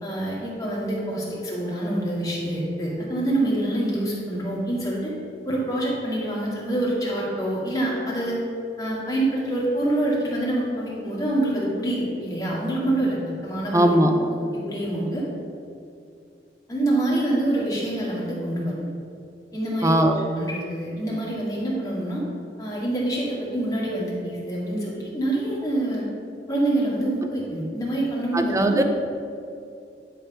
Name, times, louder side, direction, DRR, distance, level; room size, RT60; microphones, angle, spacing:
voice 1, 0.0-5.1 5.5-8.4 8.8-14.3 14.7-15.2 16.7-18.9 19.5-22.2 22.6-26.0 26.5-28.8, right 1 dB, 20° left, -6 dB, 2.1 m, -26 dB
voice 2, 13.7-14.1 19.8-20.1 28.3-28.8, right 1 dB, 20° right, 5 dB, 0.5 m, -19 dB
11.0 x 3.8 x 5.6 m, 2.5 s
head